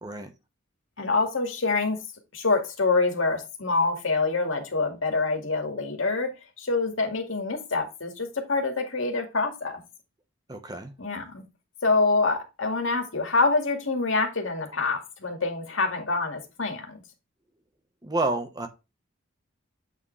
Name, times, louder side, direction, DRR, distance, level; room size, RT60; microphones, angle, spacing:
voice 1, 0.0-0.3 10.5-10.9 18.0-18.7, right 2 dB, 20° right, 1.1 m, -29 dB
voice 2, 1.0-2.0 2.3-6.3 6.6-9.8 11.0-11.4 11.8-17.0, left 3 dB, 85° left, 2.1 m, -26 dB
8.1 x 5.0 x 3.2 m
head